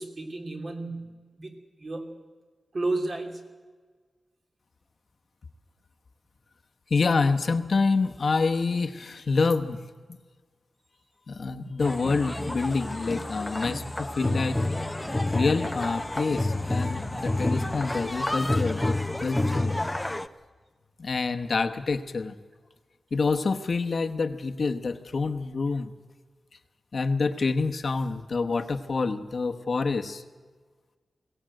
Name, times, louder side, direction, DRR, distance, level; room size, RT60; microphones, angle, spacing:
voice 1, 0.0-2.1 2.7-3.5, right 2 dB, 45° right, 3 dB, 3.0 m, -33 dB
voice 2, 6.9-9.8 11.3-14.6 15.3-19.8 21.0-22.3 23.1-25.9 26.9-30.2, left 4 dB, 45° left, 6 dB, 1.1 m, -27 dB
sound 1, 11.8-20.3, left 2 dB, 10° left, 0.7 m, -29 dB
22.0 x 17.5 x 7.7 m, 1.4 s
wide cardioid pair, 165°, 0 cm